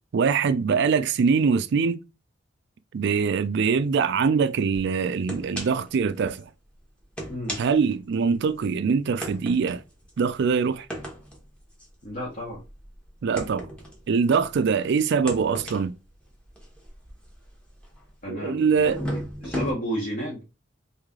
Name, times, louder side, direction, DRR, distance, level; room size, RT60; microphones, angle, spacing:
voice 1, 0.1-2.0 2.9-6.4 7.6-9.8 10.2-10.9 13.2-13.7 14.1-15.9 18.3-19.0, right 5 dB, 60° right, 0.4 m, -23 dB
sound 1, 4.7-4.8 5.3-5.9 6.3-6.4 7.0-8.6 9.2-14.7 15.1-18.2 18.7-19.7, equal, 5° left, 0.9 m, -36 dB
voice 2, 7.3-7.6 12.0-12.6 18.2-20.4, equal, 45° left, 1.1 m, -32 dB
3.1 x 2.7 x 3.6 m
head